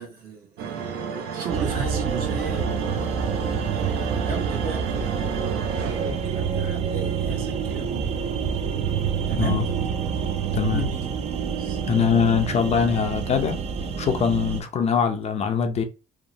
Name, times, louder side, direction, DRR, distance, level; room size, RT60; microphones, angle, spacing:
voice 1, 0.0-2.7 3.3-3.9 4.2-8.2 9.3-9.6 10.7-11.0 11.6-11.8, right 5 dB, 65° right, 1.2 m, -35 dB
sound 1, 0.6-6.6, right 6 dB, 80° right, 0.6 m, -32 dB
sound 2, 1.5-14.6, right 7 dB, 40° right, 0.4 m, -27 dB
voice 2, 10.5-10.9 11.9-13.6 14.0-15.8, left 6 dB, 40° left, 0.5 m, -22 dB
2.9 x 2.0 x 2.6 m
cardioid pair, 110°, 17 cm